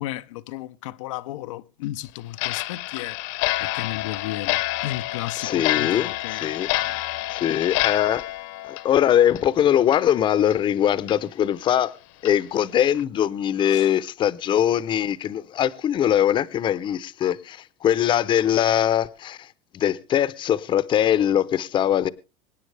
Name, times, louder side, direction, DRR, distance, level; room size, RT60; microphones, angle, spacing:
voice 1, 0.0-3.2 3.6-7.0 13.7-13.9, left 15 dB, 90° left, 0.6 m, -34 dB
Clock, 2.3-9.6 9.9-10.0 10.5-10.6 11.1-11.2 11.7-11.8 12.2-12.3 12.8-13.0, left 18 dB, 65° left, 1.0 m, -28 dB
voice 2, 5.4-6.7 7.3-8.2 8.6-11.9 12.2-19.5 19.7-22.1, left 10 dB, 30° left, 0.7 m, -22 dB
25.0 x 9.5 x 3.3 m
supercardioid pair, 135°, 16 cm